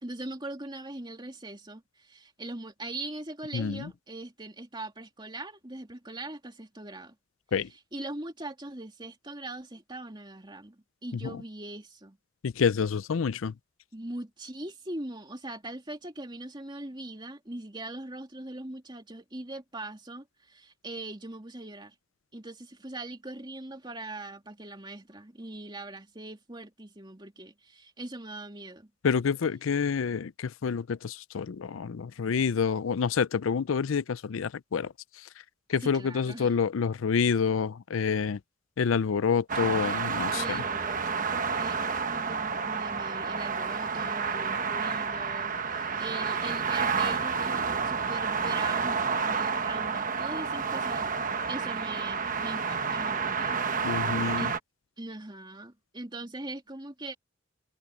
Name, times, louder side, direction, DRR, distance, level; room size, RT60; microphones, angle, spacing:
voice 1, 0.0-7.1 7.9-12.2 13.9-21.9 22.3-28.9 35.8-36.5 40.3-41.3 41.5-53.6 54.3-54.6 55.0-57.1, right 2 dB, 20° right, 2.7 m, -41 dB
voice 2, 3.5-3.9 7.5-7.7 11.1-11.4 12.4-13.5 29.0-35.3 35.7-38.4 38.8-40.6 53.8-54.5, left 6 dB, 80° left, 0.5 m, -28 dB
sound 1, 39.5-54.6, right 5 dB, 40° right, 1.2 m, -30 dB
head